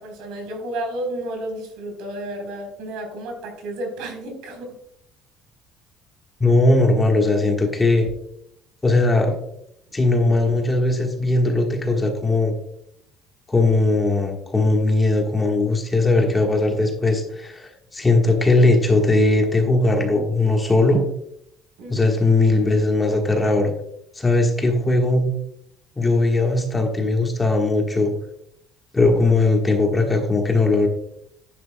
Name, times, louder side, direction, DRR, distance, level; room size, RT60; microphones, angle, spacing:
voice 1, 0.0-4.8 21.8-22.1, right 1 dB, 80° right, 3 dB, 3.7 m, -32 dB
voice 2, 6.4-8.1 8.8-9.4 9.9-12.5 13.5-21.0 21.9-23.7 24.1-25.2 26.0-28.1 28.9-30.9, left 2 dB, 10° left, 2 dB, 1.3 m, -19 dB
11.0 x 10.5 x 2.2 m, 0.73 s
cardioid pair, 170°, 0 cm